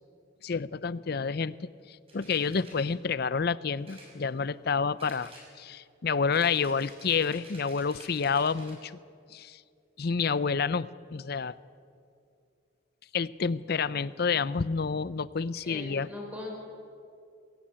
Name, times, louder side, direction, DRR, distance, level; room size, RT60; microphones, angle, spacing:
voice 1, 0.4-5.3 5.6-8.9 9.3-9.6 10.0-11.5 13.1-16.1, left 5 dB, 50° left, 17 dB, 0.5 m, -29 dB
sound 1, 2.1-2.9 3.8-4.7 5.0-5.8 6.3-8.8, right 1 dB, 30° right, 6.0 m, -51 dB
voice 2, 15.6-16.5, left 2 dB, 5° right, -1 dB, 5.6 m, -40 dB
21.5 x 16.5 x 8.8 m, 2.5 s
head